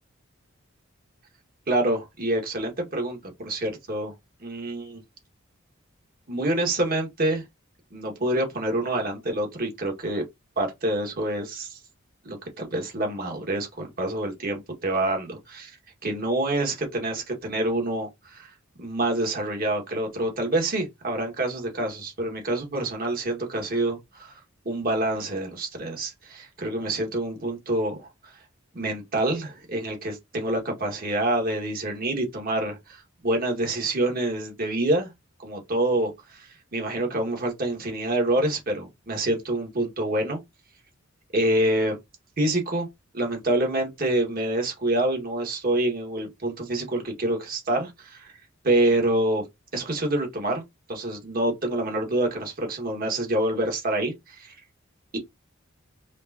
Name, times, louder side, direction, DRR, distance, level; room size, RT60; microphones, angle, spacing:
voice 1, 1.7-4.1 4.4-5.0 6.3-7.4 7.9-10.2 10.6-11.8 12.2-15.7 16.0-18.5 18.8-24.3 24.7-28.3 28.7-35.1 35.4-40.4 41.3-42.0 42.4-42.9 43.1-48.3 48.6-49.4 49.7-50.6 50.9-54.6 55.1-55.2, right 1 dB, 50° right, 1.7 m, -27 dB
5.2 x 3.1 x 2.8 m
head